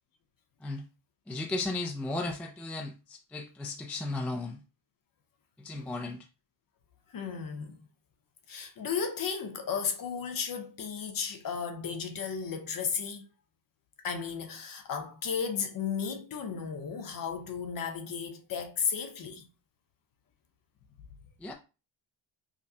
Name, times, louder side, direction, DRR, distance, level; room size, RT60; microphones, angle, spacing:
voice 1, 1.3-4.6 5.6-6.3 21.4-21.5, left 2 dB, 5° left, 0.3 m, -35 dB
voice 2, 7.1-7.8 8.5-13.2 14.0-19.5, left 6 dB, 45° left, 0.8 m, -34 dB
4.9 x 2.3 x 2.7 m
cardioid pair, 130°, 47 cm